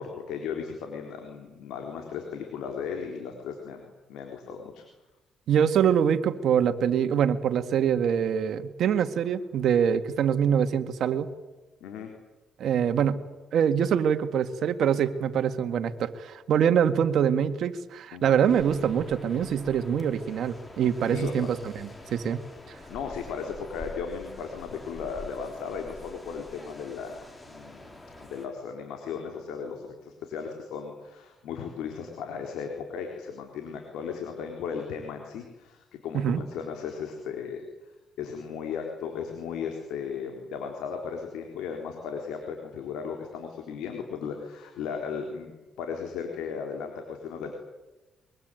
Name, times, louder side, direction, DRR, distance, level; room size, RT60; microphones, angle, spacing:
voice 1, 0.0-4.9 11.8-12.1 18.1-18.5 21.0-21.5 22.9-27.2 27.5-27.9 28.2-37.6 38.2-47.5, left 6 dB, 90° left, 3 dB, 3.9 m, -36 dB
voice 2, 5.5-11.3 12.6-13.2 13.5-22.4 36.1-36.4, right 8 dB, 70° right, 9 dB, 2.0 m, -24 dB
sound 1, 18.5-28.5, left 2 dB, 20° left, 4.5 m, -46 dB
23.5 x 23.0 x 9.2 m, 1.1 s
cardioid pair, 90°, 0 cm